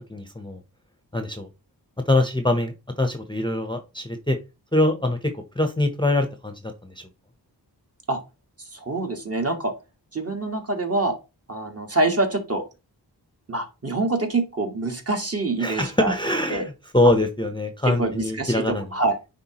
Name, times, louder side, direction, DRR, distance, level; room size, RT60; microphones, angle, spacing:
voice 1, 0.1-0.6 1.1-1.5 2.1-4.4 4.7-6.5 15.6-18.9, left 1 dB, 10° left, 6 dB, 0.8 m, -23 dB
voice 2, 8.7-9.7 10.1-11.1 11.5-12.6 13.5-16.1 16.5-16.7 17.0-17.1 17.8-19.2, right 2 dB, 35° right, 3 dB, 1.6 m, -25 dB
9.4 x 3.7 x 3.0 m, 0.28 s
wide cardioid pair, 75°, 41 cm